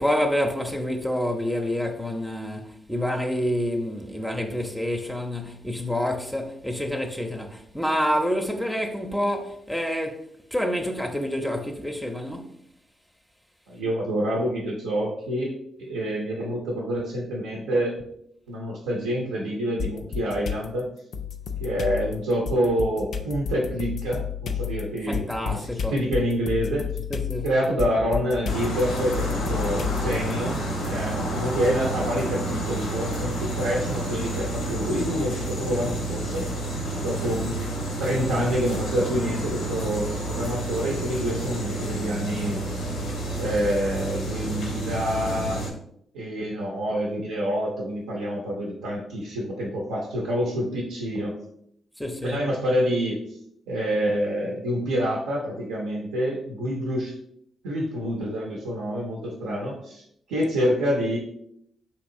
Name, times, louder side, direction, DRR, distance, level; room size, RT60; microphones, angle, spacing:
voice 1, 0.0-12.5 25.1-26.0 27.1-27.5 52.0-52.4, equal, 5° left, 0.5 m, -28 dB
voice 2, 13.7-15.5 15.8-18.0 18.5-20.9 21.6-26.9 27.4-30.6 30.9-36.5 37.0-37.6 38.0-42.6 43.4-45.6 46.1-51.4 52.2-53.2 53.7-57.1 57.6-61.2, equal, 85° right, 0.5 m, -27 dB
sound 1, 19.8-20.7 21.1-30.3, left 7 dB, 65° left, 0.3 m, -31 dB
sound 2, 28.5-45.7, right 1 dB, 90° left, 0.7 m, -30 dB
3.4 x 2.8 x 2.6 m
hypercardioid pair, 45°, 0 cm